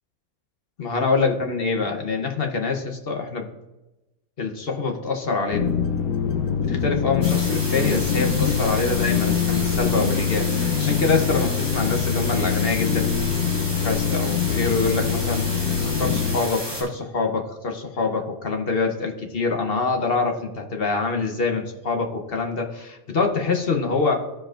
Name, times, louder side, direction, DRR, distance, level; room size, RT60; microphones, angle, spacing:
voice 1, 0.8-3.5 4.4-5.7 6.2-6.4 6.7-24.3, left 4 dB, 45° left, 3 dB, 1.0 m, -25 dB
sound 1, 5.5-16.4, left 7 dB, 85° left, 1.2 m, -24 dB
sound 2, 7.2-16.8, equal, 15° left, 2.9 m, -32 dB
14.5 x 5.0 x 2.5 m, 1.0 s
omnidirectional pair, 1.5 m